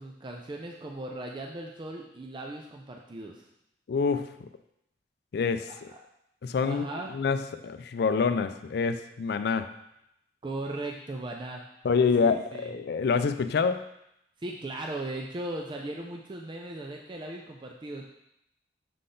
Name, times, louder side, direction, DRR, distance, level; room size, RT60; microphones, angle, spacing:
voice 1, 0.0-3.5 5.7-6.0 6.6-7.1 10.4-11.6 12.2-12.7 14.4-18.0, right 2 dB, 25° right, 1 dB, 0.4 m, -38 dB
voice 2, 3.9-4.3 5.3-5.7 6.4-9.7 11.8-13.9, left 5 dB, 60° left, 10 dB, 0.4 m, -26 dB
6.6 x 3.9 x 3.8 m, 0.81 s
head